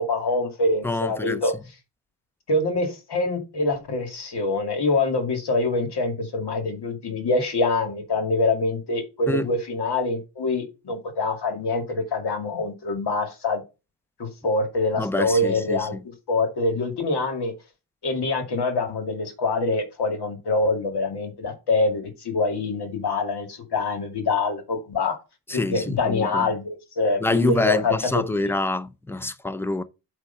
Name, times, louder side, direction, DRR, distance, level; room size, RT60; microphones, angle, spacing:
voice 1, 0.0-1.5 2.5-13.6 14.2-15.9 16.3-17.5 18.0-25.2 25.5-28.5, left 3 dB, 60° left, 2.2 m, -25 dB
voice 2, 0.8-1.4 9.3-9.5 15.0-15.9 25.5-26.5 27.2-29.8, left 2 dB, 5° left, 0.6 m, -26 dB
8.2 x 3.2 x 5.6 m
cardioid pair, 75°, 44 cm